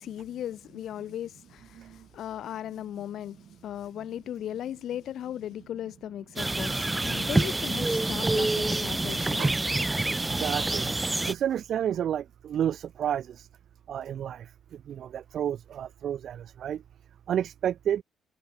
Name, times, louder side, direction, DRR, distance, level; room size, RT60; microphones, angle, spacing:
voice 1, 0.0-9.5, left 11 dB, 70° left, 4.0 m, -37 dB
sound 1, 6.4-11.3, right 2 dB, 15° right, 2.3 m, -27 dB
voice 2, 10.2-10.9 11.3-13.5 13.9-16.8 17.3-18.0, right 9 dB, 65° right, 1.1 m, -31 dB
cardioid pair, 90°, 0 cm